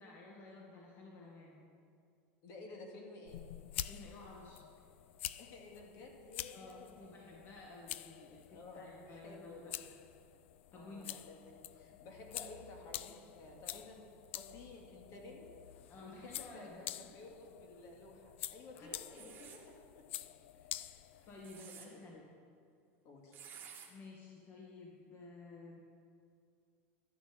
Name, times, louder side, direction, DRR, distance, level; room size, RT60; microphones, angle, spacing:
voice 1, 0.0-1.6 3.9-4.6 6.5-9.9 10.7-11.0 15.9-16.8 18.7-18.9 20.5-22.2 23.9-25.8, left 3 dB, 35° left, -2 dB, 1.9 m, -53 dB
voice 2, 2.4-3.4 5.4-7.0 8.5-9.7 10.7-14.0 14.3-15.5 16.0-19.7 21.1-21.3 21.5-22.2 23.0-23.4, left 2 dB, 50° left, 0 dB, 2.4 m, -53 dB
sound 1, 3.3-21.6, left 13 dB, 85° left, 0.4 m, -48 dB
sound 2, 19.1-19.6 21.2-21.9 23.3-23.9, right 8 dB, 35° right, 2.1 m, -52 dB
12.0 x 7.3 x 7.7 m, 2.3 s
supercardioid pair, 130°, 6 cm